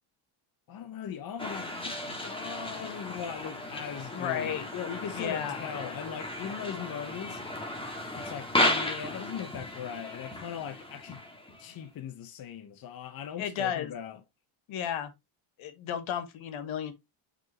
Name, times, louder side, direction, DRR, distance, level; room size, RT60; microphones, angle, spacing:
voice 1, 0.7-7.4 8.2-11.2 11.6-14.2, left 8 dB, 45° left, 0.9 m, -39 dB
sound 1, 1.4-11.8, left 1 dB, 10° left, 1.8 m, -34 dB
voice 2, 4.1-4.6 5.1-5.7 13.4-13.9 14.7-15.1 15.6-16.9, left 9 dB, 70° left, 1.5 m, -33 dB
7.6 x 5.3 x 2.9 m
cardioid pair, 135°, 49 cm